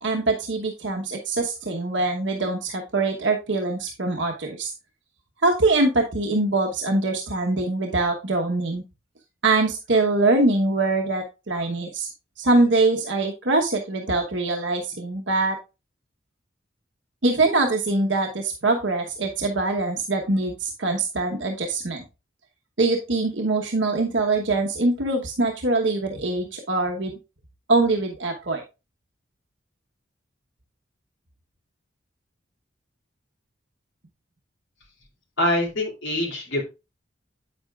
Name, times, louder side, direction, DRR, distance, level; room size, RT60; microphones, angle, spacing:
voice 1, 0.0-4.7 5.4-8.8 9.4-12.1 12.4-15.6 17.2-22.0 22.8-27.2 27.7-28.6, right 2 dB, 70° right, 1 dB, 1.1 m, -23 dB
voice 2, 35.4-36.6, left 1 dB, 80° left, -1 dB, 2.9 m, -24 dB
8.8 x 7.9 x 2.4 m, 0.27 s
head